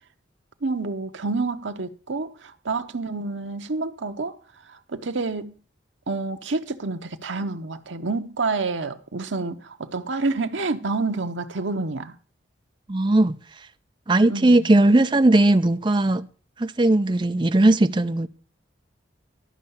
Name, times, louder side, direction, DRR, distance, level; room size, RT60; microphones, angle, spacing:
voice 1, 0.6-4.4 4.7-5.6 6.1-12.1 14.3-14.7, right 3 dB, 75° right, 0.9 m, -28 dB
voice 2, 12.9-13.4 14.1-16.2 16.6-18.3, right 2 dB, 25° right, 0.5 m, -18 dB
12.5 x 5.7 x 7.0 m
head